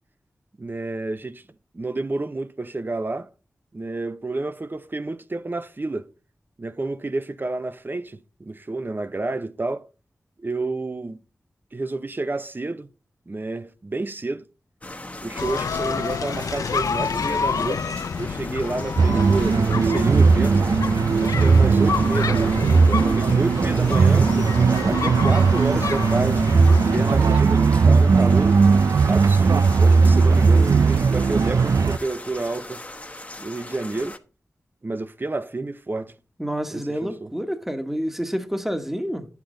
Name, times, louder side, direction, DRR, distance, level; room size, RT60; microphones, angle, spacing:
voice 1, 0.6-1.4 1.7-3.3 3.7-6.1 6.6-9.9 10.4-11.2 11.7-12.9 13.3-14.4 15.2-20.5 21.2-24.4 24.8-28.6 29.1-32.8 33.4-34.2 34.8-36.1 36.7-37.3, right 2 dB, 35° right, 0.7 m, -30 dB
sound 1, 14.8-34.2, left 1 dB, 25° left, 1.1 m, -38 dB
sound 2, 15.4-27.4, left 5 dB, 85° left, 0.5 m, -29 dB
sound 3, 19.0-32.0, right 4 dB, 70° right, 0.4 m, -18 dB
voice 2, 36.4-39.3, equal, 5° right, 1.2 m, -28 dB
10.0 x 8.3 x 3.8 m
wide cardioid pair, 60°, 6 cm